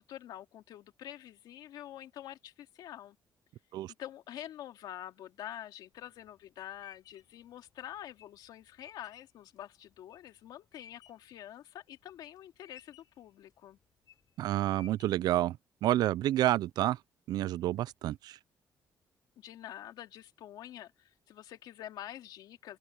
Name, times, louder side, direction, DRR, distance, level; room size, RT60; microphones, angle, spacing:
voice 1, 0.0-3.2 4.0-13.8 19.4-22.8, left 12 dB, 85° left, 2.4 m, -47 dB
sound 1, 5.9-11.4 11.8-12.4 12.7-13.3 13.8-14.3 14.7-15.4, left 8 dB, 65° left, 3.5 m, -58 dB
voice 2, 14.4-17.0 17.3-18.4, right 14 dB, 80° right, 0.4 m, -29 dB
open air
cardioid pair, 110°, 7 cm